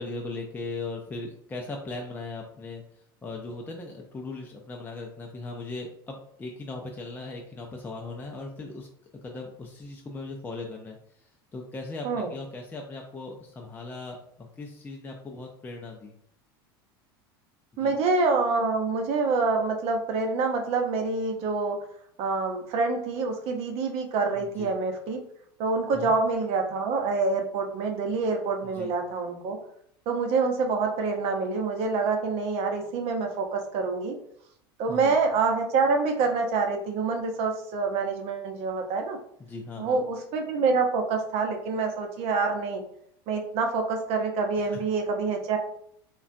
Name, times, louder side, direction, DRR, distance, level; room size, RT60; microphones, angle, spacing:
voice 1, 0.0-2.8 3.2-8.9 9.2-16.1 17.7-18.0 24.4-24.7 25.9-26.1 28.7-28.9 34.9-35.2 39.4-40.0 44.6-44.8, left 3 dB, 15° left, 0 dB, 0.4 m, -38 dB
voice 2, 17.8-21.8 22.2-25.2 25.6-29.6 30.1-34.2 34.8-39.2 39.8-42.8 43.3-45.6, right 4 dB, 55° right, 4 dB, 0.7 m, -26 dB
3.6 x 2.2 x 2.6 m, 0.67 s
hypercardioid pair, 95°, 13 cm